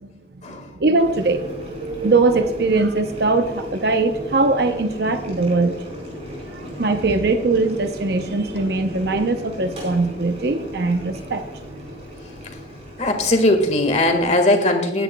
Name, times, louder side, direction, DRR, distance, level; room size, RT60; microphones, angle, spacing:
voice 1, 0.5-5.8 6.5-11.4, right 3 dB, 60° right, 7 dB, 0.7 m, -21 dB
Boiling, 0.9-14.4, equal, 35° right, 4.5 m, -36 dB
voice 2, 13.0-15.0, left 1 dB, 40° left, 5 dB, 1.7 m, -19 dB
19.0 x 10.0 x 2.2 m, 0.97 s
head